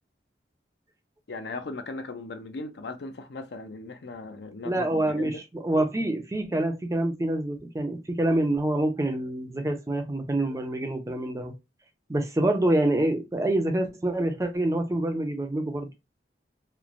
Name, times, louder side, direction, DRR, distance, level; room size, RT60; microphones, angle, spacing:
voice 1, 1.3-5.4, left 3 dB, 60° left, 0.5 m, -38 dB
voice 2, 4.6-11.5 12.1-15.9, right 1 dB, 15° right, 0.4 m, -26 dB
3.0 x 2.0 x 2.4 m
head